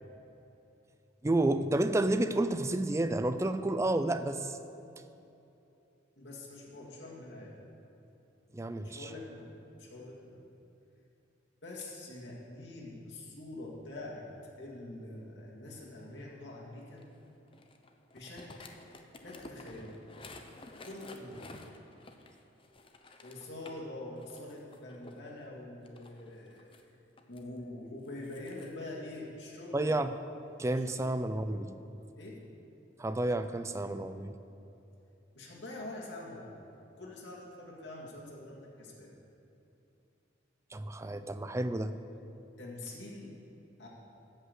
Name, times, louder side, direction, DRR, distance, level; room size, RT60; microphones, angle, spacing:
voice 1, 1.2-4.6 8.5-9.1 29.7-30.1 30.6-31.7 33.0-34.3 40.7-41.9, right 1 dB, 15° right, 10 dB, 0.4 m, -30 dB
voice 2, 6.2-7.6 8.8-10.4 11.6-14.3 14.6-17.1 18.1-18.8 19.2-20.0 20.8-21.5 23.2-26.7 27.2-29.9 30.7-31.0 32.2-32.4 35.3-36.6 37.0-39.1 42.6-43.3 43.8-43.9, left 2 dB, 65° left, -4 dB, 2.1 m, -45 dB
sound 1, 17.0-23.8 24.2-25.2 25.8-27.4 28.0-28.7, left 2 dB, 30° left, 0.7 m, -52 dB
13.5 x 5.6 x 8.0 m, 2.9 s
head